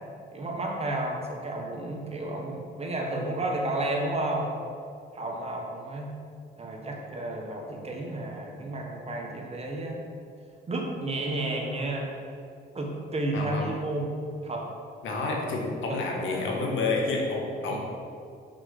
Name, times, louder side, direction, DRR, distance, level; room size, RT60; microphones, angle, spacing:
voice 1, 0.3-4.5 5.1-6.1 6.6-10.0 10.7-12.1 12.7-14.2 14.4-14.7 15.9-16.5 17.6-17.8, right 2 dB, 30° right, 0 dB, 1.6 m, -32 dB
voice 2, 13.3-13.7 15.0-17.8, left 3 dB, 80° left, 0 dB, 1.6 m, -29 dB
6.0 x 5.4 x 6.7 m, 2.4 s
cardioid pair, 90°, 20 cm